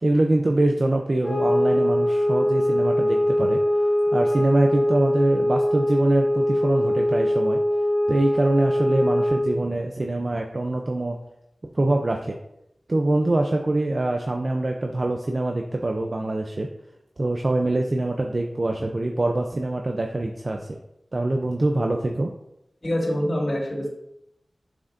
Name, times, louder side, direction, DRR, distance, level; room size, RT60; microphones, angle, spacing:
voice 1, 0.0-3.6 4.1-7.6 8.1-11.2 11.7-12.4 12.9-16.7 17.2-20.8 21.1-22.3, right 2 dB, 45° right, 2 dB, 0.5 m, -24 dB
sound 1, 1.2-9.6, equal, 70° left, 1.9 m, -22 dB
voice 2, 22.8-23.9, equal, 50° left, -2 dB, 2.2 m, -25 dB
7.7 x 6.3 x 2.6 m, 0.83 s
wide cardioid pair, 65°, 0 cm